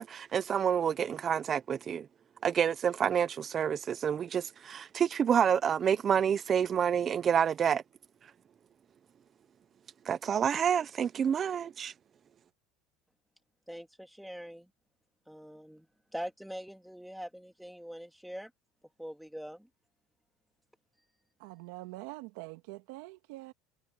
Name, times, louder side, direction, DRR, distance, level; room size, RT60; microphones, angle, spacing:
voice 1, 0.0-2.1 2.4-7.8 10.0-11.9, right 8 dB, 25° right, 0.5 m, -28 dB
voice 2, 13.7-14.7 15.3-15.9 16.1-18.5 19.0-19.7, equal, ahead, 1.9 m, -43 dB
voice 3, 21.4-23.5, right 20 dB, 65° right, 2.1 m, -44 dB
cardioid pair, 160°, 0 cm